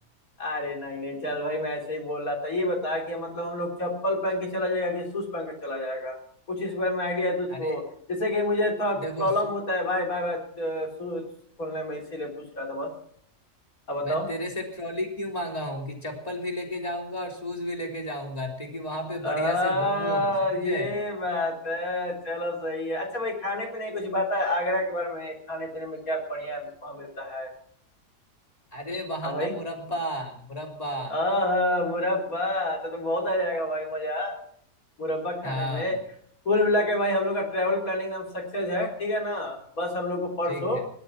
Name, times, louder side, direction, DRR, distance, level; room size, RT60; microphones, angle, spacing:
voice 1, 0.4-6.2 6.5-7.8 8.1-11.2 11.6-12.9 13.9-14.3 19.2-27.5 29.2-29.5 31.1-34.4 35.0-36.0 36.5-40.8, left 1 dB, 65° left, 1 dB, 4.3 m, -28 dB
voice 2, 9.0-9.3 14.0-20.9 28.7-31.1 35.4-35.9 40.5-40.8, equal, 25° left, 2 dB, 3.7 m, -33 dB
19.0 x 11.5 x 5.9 m, 0.63 s
omnidirectional pair, 1.6 m